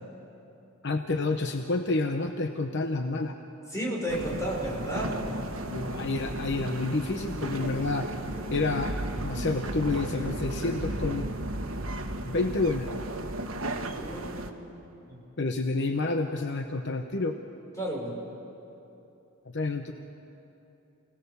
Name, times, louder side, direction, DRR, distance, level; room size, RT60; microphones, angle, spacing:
voice 1, 0.8-3.3 5.7-8.1 8.5-8.9 9.2-11.3 12.2-12.9 15.4-17.4 19.5-19.9, left 3 dB, 55° left, 5 dB, 1.0 m, -29 dB
voice 2, 3.7-5.3 7.5-7.9 8.3-8.6 13.9-14.7 15.1-15.2 17.8-18.1, right 1 dB, 15° left, -2 dB, 5.1 m, -34 dB
sound 1, 4.1-14.5, right 1 dB, 75° right, 1.4 m, -34 dB
28.5 x 18.5 x 7.0 m, 2.9 s
head